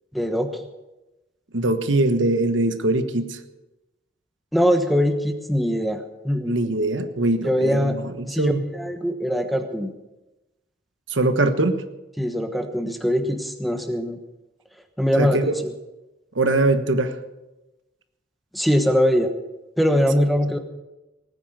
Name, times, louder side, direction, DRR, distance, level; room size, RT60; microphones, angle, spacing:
voice 1, 0.1-0.5 4.5-6.6 7.4-8.0 8.3-9.9 12.2-14.2 15.0-15.7 18.5-19.3 19.8-20.6, equal, ahead, 6 dB, 1.2 m, -22 dB
voice 2, 1.5-3.4 6.5-8.6 11.1-11.8 15.2-15.5 16.3-17.2, right 2 dB, 85° right, 9 dB, 1.3 m, -22 dB
18.5 x 9.6 x 6.7 m, 1.0 s
head